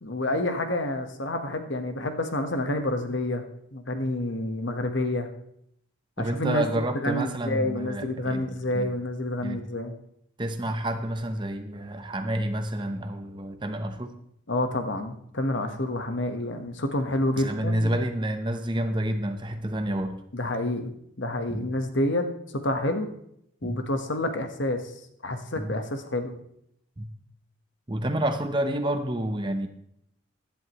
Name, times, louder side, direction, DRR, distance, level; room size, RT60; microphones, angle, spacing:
voice 1, 0.0-3.4 3.7-5.3 6.2-6.6 6.9-9.9 14.5-17.9 20.3-23.1 23.6-24.9 25.2-26.3, left 1 dB, 60° left, 6 dB, 1.3 m, -28 dB
voice 2, 6.2-8.9 9.4-9.6 10.4-14.2 17.4-20.2 21.5-21.7 23.6-23.8 25.5-25.7 27.0-27.1 27.9-29.7, right 1 dB, 20° right, 7 dB, 0.8 m, -29 dB
15.5 x 11.0 x 3.1 m, 0.74 s
head